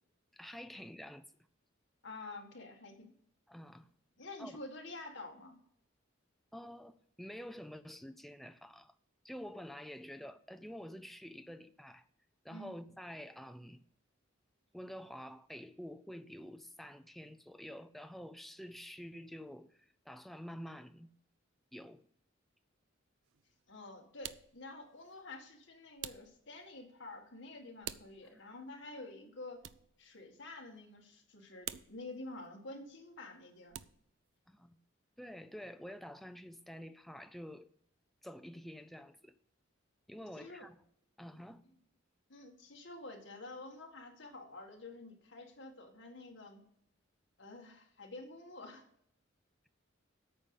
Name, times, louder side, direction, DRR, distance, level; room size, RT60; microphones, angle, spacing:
voice 1, 0.3-1.3 3.5-3.9 4.4-4.6 6.5-9.0 9.2-12.1 12.4-13.8 14.7-21.1 21.7-22.0 28.2-28.5 34.5-34.8 35.2-37.7 38.2-39.4 40.1-40.8 41.2-41.6, equal, ahead, 0.4 m, -48 dB
voice 2, 2.0-3.1 4.2-5.6 12.5-12.7 23.7-29.6 30.0-33.8 40.3-40.6 42.3-46.6 47.4-48.8, left 2 dB, 65° left, 1.9 m, -49 dB
sound 1, 23.2-23.6 24.2-25.4 26.0-26.7 27.8-28.5 29.6-30.1 30.4-31.0 31.6-32.8 33.4-34.1, right 11 dB, 70° right, 0.4 m, -47 dB
8.9 x 5.3 x 7.1 m
head